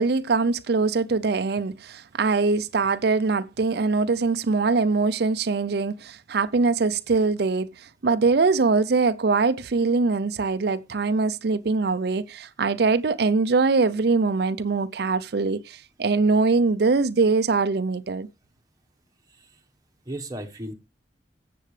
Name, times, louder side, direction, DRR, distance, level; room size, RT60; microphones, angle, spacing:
voice 1, 0.0-18.3, right 4 dB, 65° right, 0.5 m, -22 dB
voice 2, 20.1-20.7, right 1 dB, 20° right, 1.2 m, -35 dB
14.0 x 7.7 x 3.2 m
head